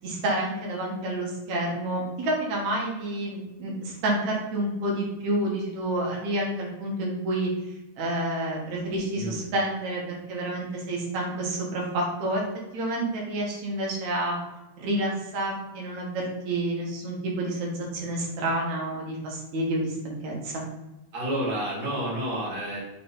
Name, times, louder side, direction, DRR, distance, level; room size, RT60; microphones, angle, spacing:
voice 1, 0.0-7.5 8.0-12.4 12.7-14.4 14.8-20.6, right 1 dB, 70° right, -2 dB, 2.8 m, -29 dB
voice 2, 21.1-22.8, right 1 dB, 35° right, -7 dB, 2.8 m, -29 dB
6.6 x 4.2 x 4.0 m, 0.97 s
omnidirectional pair, 3.4 m